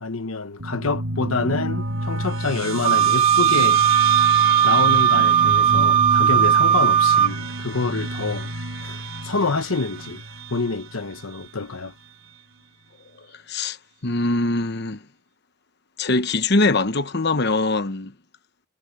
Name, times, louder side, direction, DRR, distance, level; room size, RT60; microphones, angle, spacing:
voice 1, 0.0-3.9 4.6-8.5 8.8-10.2 10.5-11.9, left 4 dB, 85° left, 1.1 m, -27 dB
sound 1, 0.6-11.4, right 2 dB, 75° right, 2.7 m, -29 dB
Wind instrument woodwind instrument, 2.8-7.3, right 9 dB, 25° right, 0.4 m, -17 dB
voice 2, 13.3-13.8 14.0-15.0 16.0-18.1, left 2 dB, 50° left, 1.1 m, -22 dB
head